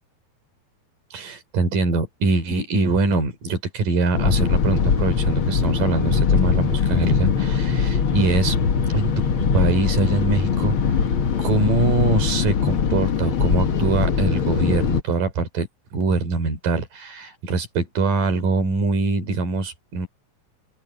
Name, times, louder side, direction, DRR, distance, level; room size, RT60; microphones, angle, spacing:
voice 1, 1.1-8.6 8.9-10.8 11.4-15.7 15.9-20.1, right 3 dB, 60° right, 5.3 m, -23 dB
sound 1, 4.1-15.0, left 6 dB, 55° left, 1.5 m, -21 dB
open air
omnidirectional pair, 4.4 m